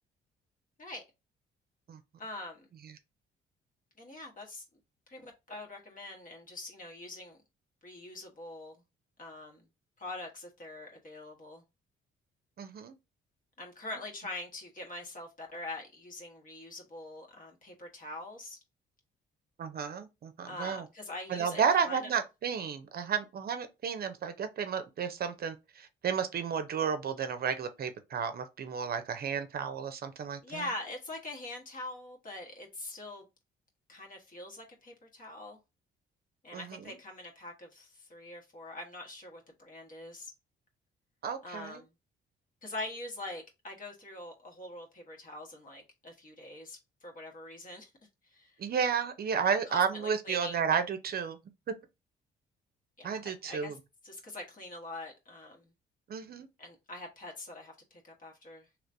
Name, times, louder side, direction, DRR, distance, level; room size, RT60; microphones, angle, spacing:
voice 1, 2.2-2.7 4.0-4.6 5.1-7.4 7.8-8.8 9.2-9.7 10.0-11.6 13.6-18.6 20.4-22.1 30.4-33.2 33.9-35.6 36.4-40.3 41.4-41.9 42.6-47.9 48.2-48.6 49.5-50.6 53.0-53.2 53.5-53.8 54.0-55.7 56.6-58.7, left 2 dB, 45° left, 1.3 m, -44 dB
voice 2, 12.6-12.9 19.6-20.9 21.3-30.7 36.5-36.9 41.2-41.8 48.6-51.4 53.0-53.8 56.1-56.5, right 7 dB, 50° right, 0.6 m, -32 dB
3.1 x 3.0 x 2.6 m
cardioid pair, 90°, 20 cm